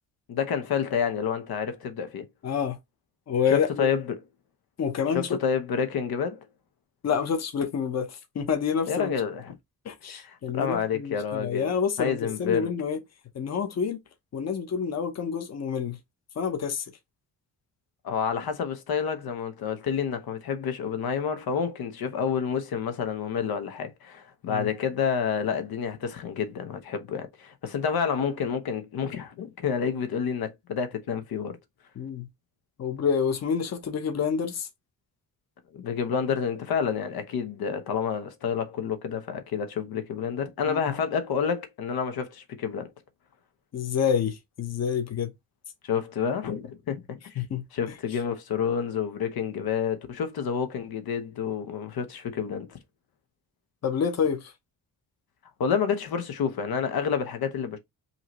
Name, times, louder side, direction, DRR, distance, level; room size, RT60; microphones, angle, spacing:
voice 1, 0.3-2.3 3.5-4.1 5.1-6.4 8.9-9.5 10.1-11.7 12.0-12.7 18.0-31.6 35.7-42.9 45.8-47.4 47.7-52.8 55.6-57.8, left 7 dB, 80° left, 1.0 m, -29 dB
voice 2, 2.4-2.8 3.3-3.8 4.8-5.4 7.0-9.1 9.8-13.0 13.3-14.0 14.3-16.0 16.4-16.8 24.5-24.7 32.0-32.3 32.8-34.7 40.7-40.8 43.7-45.3 47.4-47.6 53.8-54.5, left 7 dB, 45° left, 1.0 m, -28 dB
5.6 x 2.8 x 3.0 m
wide cardioid pair, 170°, 36 cm